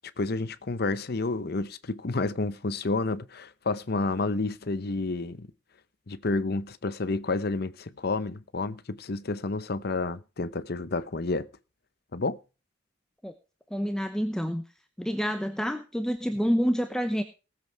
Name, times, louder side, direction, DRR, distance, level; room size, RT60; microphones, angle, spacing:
voice 1, 0.2-5.5 6.1-11.5 12.1-12.4, left 3 dB, 55° left, 0.8 m, -30 dB
voice 2, 13.7-14.6 15.0-17.2, equal, 5° left, 0.8 m, -28 dB
18.5 x 7.7 x 4.5 m
head